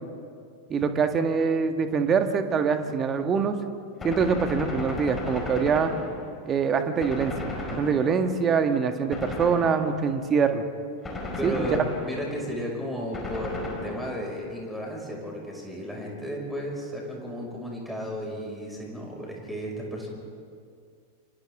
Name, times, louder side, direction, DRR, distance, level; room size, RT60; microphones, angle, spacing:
voice 1, 0.7-3.5 4.0-5.9 6.5-10.7 11.4-11.8, right 6 dB, 25° right, 7 dB, 1.7 m, -24 dB
Gunshot gunfire, 4.0-6.5 7.0-8.4 9.1-10.1 11.0-12.4 13.1-14.4, left 2 dB, 15° left, 4.5 m, -35 dB
voice 2, 11.4-20.1, equal, ahead, -2 dB, 5.8 m, -34 dB
29.5 x 25.5 x 3.7 m, 2.2 s
figure-of-eight pair, 90°, 0 cm